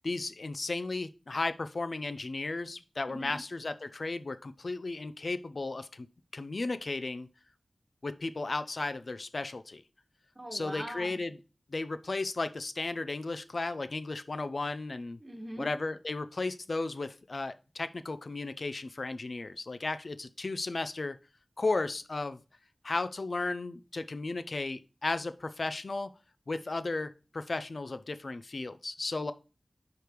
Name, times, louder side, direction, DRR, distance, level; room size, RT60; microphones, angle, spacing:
voice 1, 0.0-6.1 6.3-7.3 8.0-9.8 10.5-11.4 11.7-15.2 15.6-21.2 21.6-22.4 22.8-26.1 26.5-29.3, left 3 dB, 65° left, 12 dB, 0.5 m, -34 dB
voice 2, 10.3-11.2 15.2-15.7, right 1 dB, 30° right, 2 dB, 1.5 m, -41 dB
5.1 x 4.8 x 4.5 m, 0.32 s
wide cardioid pair, 70°, 0 cm